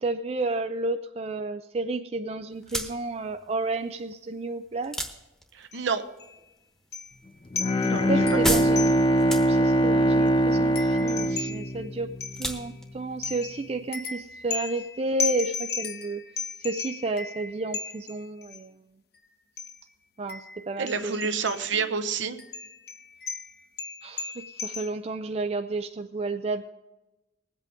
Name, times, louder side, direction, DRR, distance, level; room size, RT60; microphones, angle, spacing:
voice 1, 0.0-5.0 8.1-9.0 9.5-12.1 12.4-16.2 16.6-18.7 20.2-21.6 24.0-26.7, right 2 dB, 30° right, 7 dB, 0.4 m, -31 dB
sound 1, 2.5-14.6, equal, 5° left, 1.0 m, -37 dB
voice 2, 5.5-6.0 7.8-8.4 11.3-11.5 20.8-22.4, right 5 dB, 75° right, 8 dB, 0.9 m, -29 dB
sound 2, 5.7-5.9 6.2-6.3 6.9-7.3 7.6-9.3 9.7-9.8 10.0-12.8 13.2-18.6 19.6-19.8 20.3-21.9 22.4-24.9, left 5 dB, 55° left, 0.9 m, -36 dB
Bowed string instrument, 7.5-12.4, right 1 dB, 25° left, 0.4 m, -22 dB
20.5 x 8.2 x 3.6 m, 1.0 s
head